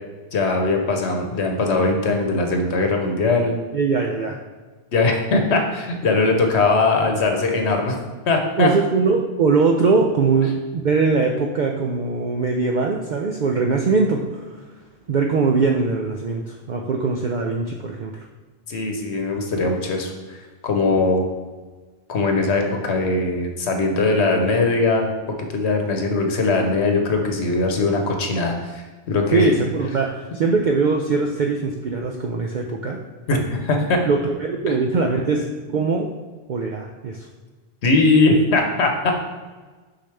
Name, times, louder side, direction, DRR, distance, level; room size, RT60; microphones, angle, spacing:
voice 1, 0.3-3.5 4.9-8.0 8.3-8.7 18.7-20.4 20.6-21.3 22.1-25.1 25.4-29.5 33.3-34.0 37.8-39.1, left 3 dB, 80° left, 3 dB, 1.1 m, -20 dB
voice 2, 3.7-4.4 8.6-14.7 15.1-18.3 29.3-33.0 34.1-36.1 36.5-37.3, right 4 dB, 55° right, 1 dB, 0.6 m, -21 dB
6.7 x 5.6 x 3.3 m, 1.3 s
omnidirectional pair, 1.1 m